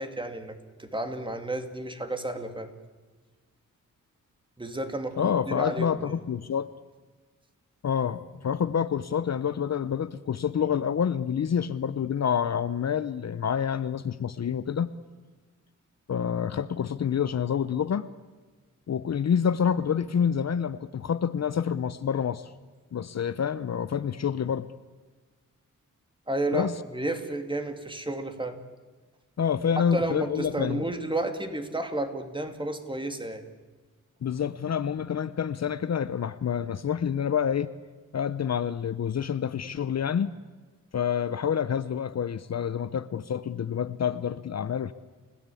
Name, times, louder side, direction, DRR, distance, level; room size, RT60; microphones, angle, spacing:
voice 1, 0.0-2.7 4.6-6.0 26.3-26.7 26.9-28.6 29.8-33.4, right 1 dB, 15° right, 7 dB, 2.4 m, -32 dB
voice 2, 5.2-6.7 7.8-14.9 16.1-18.1 18.9-22.5 22.9-24.7 26.5-26.7 29.4-30.8 34.2-37.7 38.1-40.3 40.9-44.9, left 8 dB, 55° left, 14 dB, 0.8 m, -27 dB
29.5 x 17.0 x 8.4 m, 1.3 s
wide cardioid pair, 135°, 32 cm